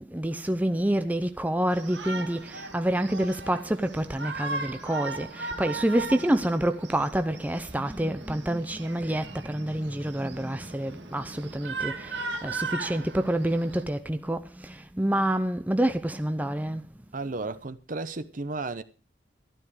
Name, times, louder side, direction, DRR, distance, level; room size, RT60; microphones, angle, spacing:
voice 1, 0.0-16.9, right 1 dB, 10° right, 0.6 m, -28 dB
Shout, 1.7-13.8, right 3 dB, 75° right, 2.1 m, -38 dB
voice 2, 17.1-18.8, right 3 dB, 50° right, 0.8 m, -33 dB
13.0 x 12.0 x 4.9 m
head